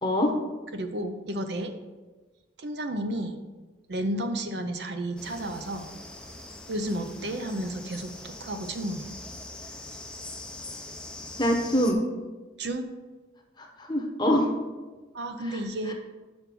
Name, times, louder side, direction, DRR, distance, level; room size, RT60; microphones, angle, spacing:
voice 1, 0.0-0.3 11.4-12.0 13.6-14.5 15.9-16.0, equal, 20° left, 3 dB, 0.9 m, -24 dB
voice 2, 0.7-1.7 2.6-3.4 3.9-5.9 6.7-9.1 12.6-12.8 15.1-15.9, right 1 dB, 55° right, 7 dB, 0.6 m, -32 dB
sound 1, 5.2-11.9, left 2 dB, 5° left, 0.5 m, -42 dB
6.0 x 5.2 x 6.0 m, 1.3 s
head